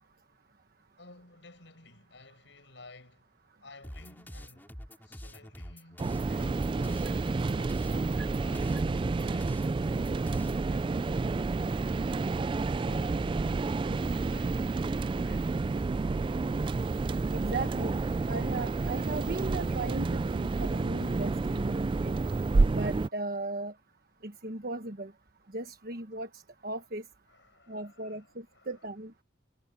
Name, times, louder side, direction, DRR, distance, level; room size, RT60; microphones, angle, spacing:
voice 1, 1.0-3.3 3.6-4.8 5.0-11.2 12.9-14.6 15.1-16.0 27.3-28.9, left 2 dB, 75° left, 6.8 m, -54 dB
sound 1, 3.8-10.6, equal, 10° left, 2.4 m, -46 dB
sound 2, 6.0-23.1, right 3 dB, 25° right, 0.3 m, -30 dB
voice 2, 17.3-18.0 18.3-22.1 22.7-23.7 24.2-25.1 25.5-27.0 27.7-29.1, right 2 dB, 50° right, 1.2 m, -37 dB
head